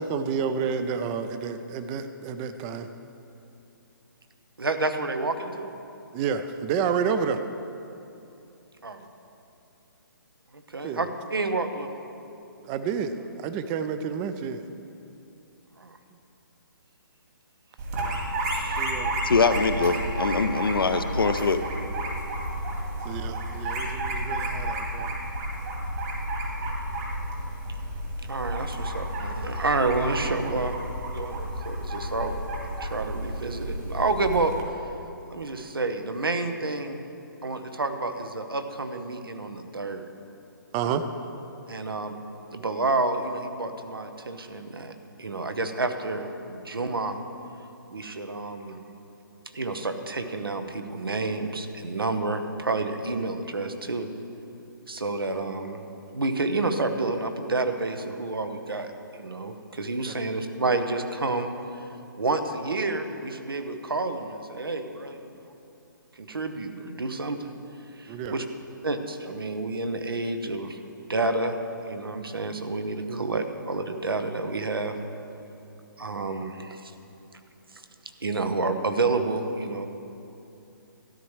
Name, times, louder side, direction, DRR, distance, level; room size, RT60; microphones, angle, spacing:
voice 1, 0.0-2.9 6.1-7.4 10.8-11.0 12.6-14.7 18.7-19.1 23.0-25.1 40.7-41.0 60.1-60.2 68.1-68.4 73.1-73.2, right 6 dB, 20° right, 10 dB, 0.4 m, -30 dB
voice 2, 4.6-5.7 8.8-9.1 10.5-11.9 15.8-16.0 18.5-18.9 28.3-30.8 31.1-32.4 32.6-34.5 35.3-37.0 37.4-40.1 40.9-41.0 41.7-42.1 42.5-47.2 47.9-48.8 49.5-54.1 54.9-55.8 56.1-58.9 59.2-61.5 62.2-65.5 66.2-67.5 68.0-68.4 68.8-70.8 71.1-71.6 71.8-75.0 76.0-76.9 78.2-79.9, right 3 dB, 90° right, 7 dB, 0.9 m, -29 dB
sound 1, 17.8-34.6, right 1 dB, 45° right, 2.0 m, -31 dB
voice 3, 19.2-21.6, left 4 dB, 85° left, 9 dB, 0.6 m, -23 dB
13.0 x 10.5 x 3.2 m, 2.8 s
figure-of-eight pair, 140°, 12 cm